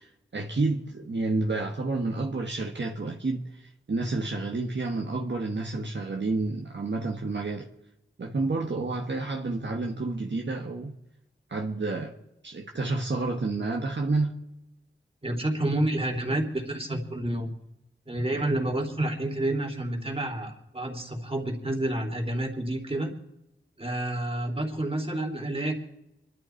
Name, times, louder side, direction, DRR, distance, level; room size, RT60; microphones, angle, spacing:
voice 1, 0.0-7.7 8.2-11.0 11.5-12.1 12.4-14.3, right 3 dB, 65° right, 1.4 m, -30 dB
voice 2, 15.2-17.5 18.1-23.1 23.8-25.7, right 1 dB, 30° right, 3.3 m, -29 dB
26.0 x 12.0 x 4.5 m
wide cardioid pair, 60°, 20 cm